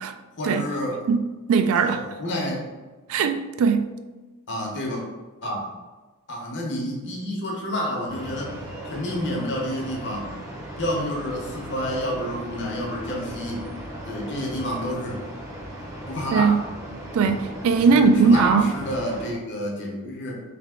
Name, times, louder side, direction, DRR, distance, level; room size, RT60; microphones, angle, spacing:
voice 1, 0.4-1.0 1.8-2.7 4.5-5.0 5.4-5.6 6.3-10.3 10.8-13.7 14.1-15.2 16.1-16.6 17.8-20.4, left 1 dB, 55° left, 0.9 m, -29 dB
voice 2, 1.1-2.0 3.1-3.9 16.3-16.6 17.1-18.7, right 5 dB, 65° right, 0.3 m, -19 dB
sound 1, 8.1-19.3, equal, 15° right, 0.7 m, -37 dB
3.4 x 2.8 x 3.6 m
head